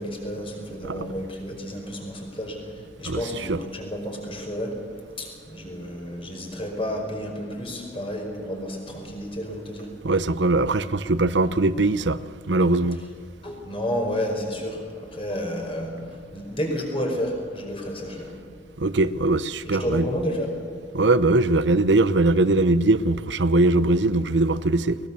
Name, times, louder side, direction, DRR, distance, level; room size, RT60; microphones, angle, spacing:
voice 1, 0.0-10.0 13.4-18.5 19.6-20.5, equal, 30° left, 5.2 m, -31 dB
voice 2, 10.0-12.2 12.5-13.0 18.8-20.0 20.9-25.0, right 2 dB, 85° right, 0.9 m, -21 dB
23.0 x 21.0 x 7.0 m
head